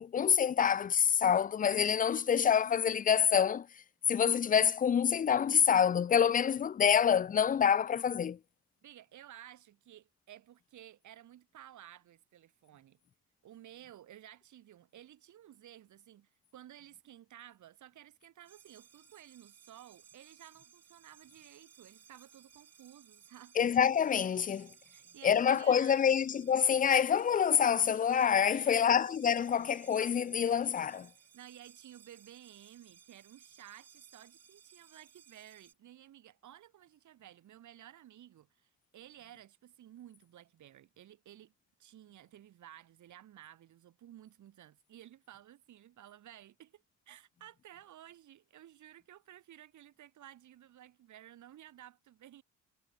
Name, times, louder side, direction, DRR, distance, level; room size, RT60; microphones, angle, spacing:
voice 1, 0.0-3.7 4.1-8.4 23.6-24.7 25.2-31.1, left 8 dB, 30° left, 0.4 m, -27 dB
voice 2, 8.8-13.0 13.4-23.6 24.9-26.2 28.4-28.9 31.3-41.5 41.8-52.4, right 12 dB, 75° right, 5.5 m, -55 dB
sound 1, 18.5-35.7, right 8 dB, 55° right, 6.0 m, -61 dB
cardioid pair, 90°, 30 cm